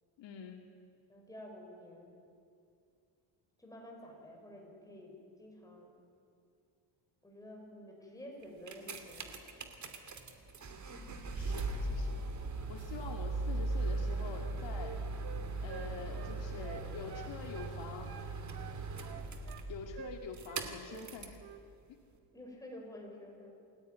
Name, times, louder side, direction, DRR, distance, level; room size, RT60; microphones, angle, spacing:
voice 1, 0.2-0.7 11.3-12.2 12.7-15.0 15.6-18.2 19.7-21.4 21.9-22.0, left 6 dB, 60° left, 3 dB, 2.4 m, -46 dB
voice 2, 1.1-2.1 3.6-5.9 7.2-9.8 22.3-23.5, left 1 dB, 5° left, 0 dB, 6.1 m, -50 dB
car turning on and off interior, 8.4-21.4 22.2-22.3, right 2 dB, 35° right, 2.7 m, -39 dB
Wind instrument woodwind instrument, 14.3-17.8 18.0-19.7 20.0-20.2 20.5-21.1 21.4-21.6, right 9 dB, 50° right, 1.5 m, -49 dB
28.5 x 16.5 x 9.4 m, 2.5 s
cardioid pair, 130°, 49 cm